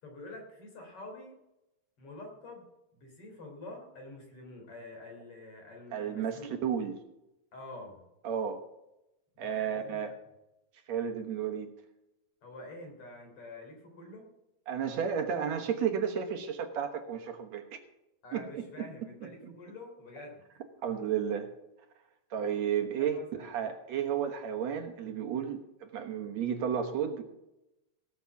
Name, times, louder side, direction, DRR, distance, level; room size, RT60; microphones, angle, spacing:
voice 1, 0.0-1.3 2.0-2.7 2.9-6.6 7.5-8.0 9.4-10.1 12.4-14.3 18.2-20.4 22.8-23.5, left 2 dB, 50° left, 2 dB, 4.2 m, -47 dB
voice 2, 5.9-6.9 8.2-8.6 9.4-10.1 10.9-11.7 14.7-17.8 18.3-18.6 19.4-19.5 20.8-21.5 22.3-27.2, right 8 dB, 70° right, 5 dB, 2.4 m, -32 dB
17.0 x 7.1 x 7.1 m, 0.91 s
omnidirectional pair, 3.3 m